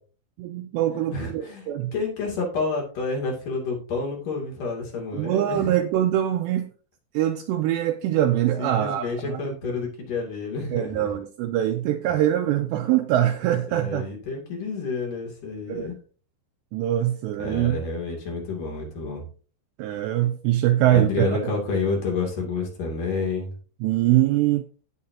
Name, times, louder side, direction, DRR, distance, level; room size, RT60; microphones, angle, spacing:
voice 1, 0.4-1.9 5.1-6.7 7.1-9.5 10.7-14.0 15.7-15.9 16.7-17.8 19.8-21.5 23.8-24.6, right 12 dB, 80° right, 2.6 m, -23 dB
voice 2, 1.1-5.7 8.6-11.1 13.7-16.0 17.4-19.2 20.9-23.5, left 4 dB, 50° left, 3.8 m, -29 dB
16.5 x 5.7 x 2.8 m
omnidirectional pair, 5.5 m